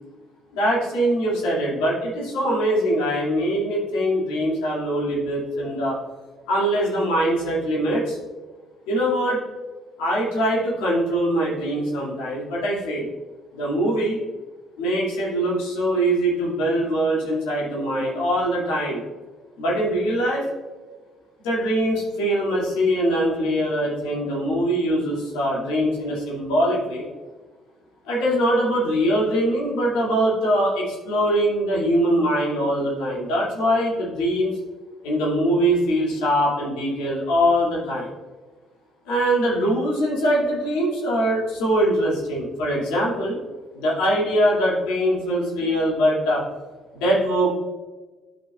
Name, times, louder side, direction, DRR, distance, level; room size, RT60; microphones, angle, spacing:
voice 1, 0.5-6.0 6.5-8.2 8.9-9.4 10.0-13.1 13.5-14.2 14.8-19.0 19.6-20.5 21.4-27.0 28.0-34.5 35.0-38.1 39.1-43.4 43.7-46.4 46.9-47.5, equal, 85° left, -5 dB, 2.2 m, -22 dB
10.0 x 5.7 x 2.3 m, 1.3 s
hypercardioid pair, 60°, 0 cm